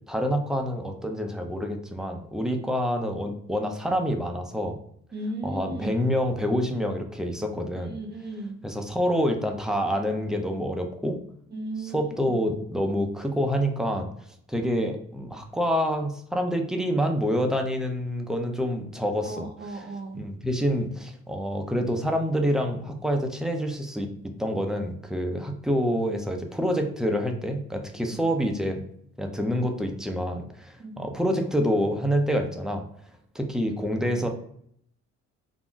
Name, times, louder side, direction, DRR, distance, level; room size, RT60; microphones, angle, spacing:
voice 1, 0.1-4.8 5.4-7.9 8.6-11.2 11.9-14.1 14.5-19.5 19.7-19.8 20.1-24.1 24.4-28.8 29.2-32.8 33.3-34.3, equal, ahead, 3 dB, 0.4 m, -27 dB
voice 2, 5.1-6.0 7.7-8.6 11.5-12.3 19.2-20.2 28.1-28.2 30.8-31.0, right 1 dB, 35° right, 4 dB, 0.7 m, -36 dB
2.5 x 2.1 x 3.6 m, 0.66 s
cardioid pair, 90°, 30 cm